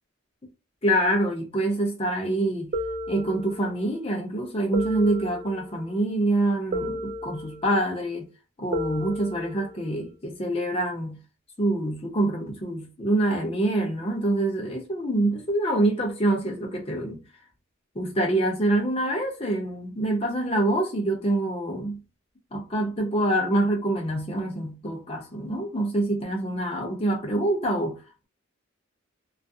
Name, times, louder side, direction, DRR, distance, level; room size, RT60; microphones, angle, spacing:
voice 1, 0.8-2.7 3.1-8.3 8.6-11.2 11.6-17.2 18.0-22.0 22.5-28.3, right 1 dB, 30° left, 0.6 m, -26 dB
sound 1, 2.7-3.9 4.7-5.9 6.7-7.9 8.7-9.9, equal, 40° right, 0.3 m, -33 dB
2.3 x 2.0 x 2.6 m
head